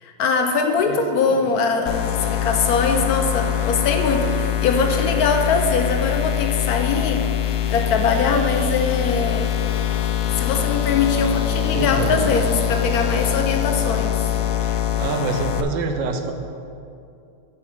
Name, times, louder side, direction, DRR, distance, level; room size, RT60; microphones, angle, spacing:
voice 1, 0.0-7.3 7.7-9.6 10.3-14.2, left 4 dB, 70° left, 5 dB, 0.9 m, -22 dB
sound 1, 1.9-15.6, left 10 dB, 90° left, 0.7 m, -23 dB
voice 2, 11.5-12.3 14.9-16.3, right 4 dB, 70° right, 5 dB, 1.4 m, -26 dB
7.3 x 6.7 x 5.4 m, 2.5 s
omnidirectional pair, 2.1 m